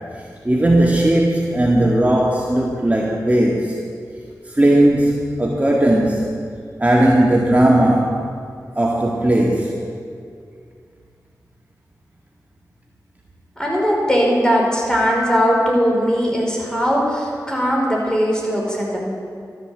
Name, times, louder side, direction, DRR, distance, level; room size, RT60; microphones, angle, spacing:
voice 1, 0.5-3.8 4.5-6.4 6.8-8.3 8.8-9.8, right 1 dB, 20° right, -2 dB, 1.8 m, -17 dB
voice 2, 13.6-19.1, equal, 10° left, -3 dB, 5.0 m, -19 dB
12.5 x 11.0 x 7.9 m, 2.3 s
cardioid pair, 45°, 7 cm